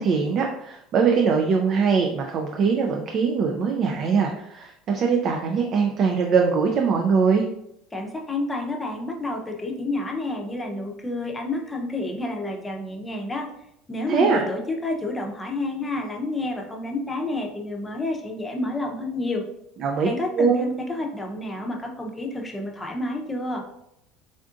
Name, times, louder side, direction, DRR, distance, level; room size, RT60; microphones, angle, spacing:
voice 1, 0.0-7.5 14.1-14.5 19.8-20.1 20.4-20.7, right 5 dB, 50° right, 1 dB, 0.4 m, -22 dB
voice 2, 7.9-13.5 13.9-19.4 20.0-23.6, left 2 dB, 15° left, 1 dB, 0.7 m, -29 dB
3.5 x 2.5 x 2.4 m, 0.78 s
supercardioid pair, 90°, 0 cm